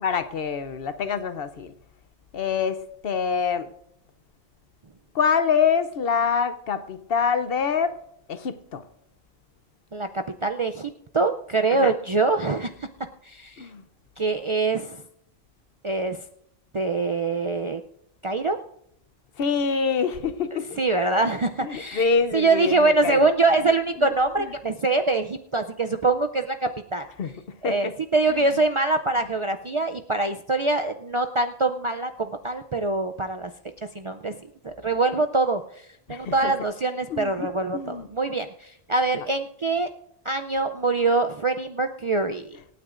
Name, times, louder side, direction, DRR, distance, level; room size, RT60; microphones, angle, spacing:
voice 1, 0.0-1.7 2.3-3.7 5.1-8.0 8.3-8.8 11.7-11.9 13.6-13.8 19.4-20.8 21.6-23.3 23.6-23.7 24.0-24.1 24.4-24.5 27.2-27.3 27.6-27.9 28.3-28.5 36.1-36.5 37.1-38.1, left 6 dB, 65° left, 0.9 m, -26 dB
voice 2, 10.4-12.7 13.2-13.7 14.2-15.0 15.8-16.2 16.7-17.8 18.2-18.6 20.8-27.1 27.6-33.5 33.9-34.4 34.6-35.6 36.1-39.9 40.3-42.6, right 3 dB, 45° right, 0.4 m, -24 dB
26.0 x 9.3 x 2.5 m
omnidirectional pair, 1.1 m